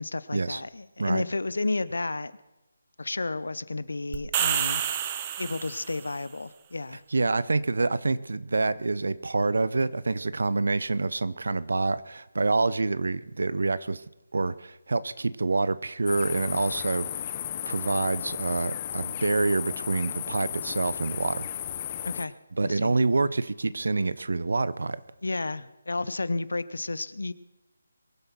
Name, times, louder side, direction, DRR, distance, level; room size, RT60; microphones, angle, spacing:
voice 1, 0.0-2.3 3.0-4.8 5.4-7.0 22.0-22.3 22.6-22.9 25.2-27.3, left 2 dB, 70° left, 17 dB, 0.8 m, -31 dB
sound 1, 4.1-6.1, right 10 dB, 25° right, 1.0 m, -28 dB
voice 2, 7.1-14.0 14.3-17.1 17.7-21.5 22.6-25.0, right 3 dB, 65° right, 17 dB, 0.7 m, -27 dB
sound 2, 16.1-22.2, left 10 dB, 30° left, 0.7 m, -35 dB
23.0 x 7.8 x 6.0 m, 0.98 s
figure-of-eight pair, 155°, 0 cm